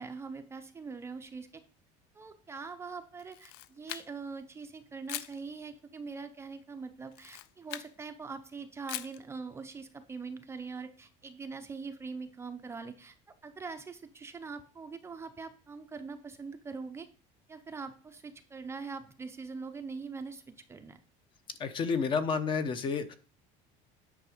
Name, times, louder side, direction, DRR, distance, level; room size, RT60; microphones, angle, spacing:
voice 1, 0.0-1.6 2.1-13.1 13.4-17.1 17.5-21.0, right 4 dB, 15° right, 7 dB, 0.6 m, -43 dB
Camera, 3.2-4.4 5.1-5.4 7.1-7.9 8.9-9.2, left 15 dB, 80° left, 0.5 m, -41 dB
voice 2, 21.6-23.2, left 5 dB, 30° left, 10 dB, 0.8 m, -30 dB
9.5 x 5.9 x 4.9 m, 0.39 s
cardioid pair, 160°, 16 cm